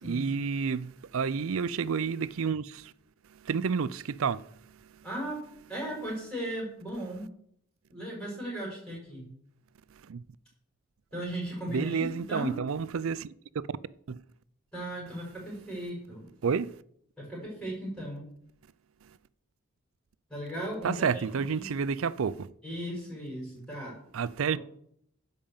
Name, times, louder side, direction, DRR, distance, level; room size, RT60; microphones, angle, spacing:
voice 1, 0.0-2.9 3.4-4.5 10.1-10.2 11.7-13.6 14.1-14.2 16.4-16.8 20.8-22.5 24.1-24.6, right 6 dB, 70° right, 0.4 m, -30 dB
voice 2, 5.0-5.4 5.7-7.3 7.9-9.3 11.1-12.6 14.7-16.3 17.2-18.2 20.3-21.1 21.6-21.7 22.6-23.9 24.5-24.6, equal, 5° left, 5.3 m, -36 dB
11.0 x 5.1 x 7.1 m
head